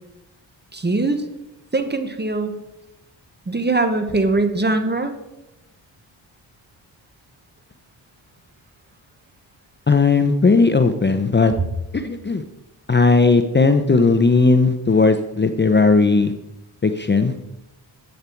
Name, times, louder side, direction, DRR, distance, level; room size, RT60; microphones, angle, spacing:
voice 1, 0.7-1.2 1.7-2.6 3.5-5.1, right 2 dB, 20° right, 8 dB, 1.3 m, -21 dB
voice 2, 9.9-11.5 11.9-12.4 12.9-16.3 16.8-17.4, left 4 dB, 25° left, 8 dB, 0.7 m, -16 dB
10.5 x 8.4 x 4.6 m, 0.92 s
cardioid pair, 65°, 47 cm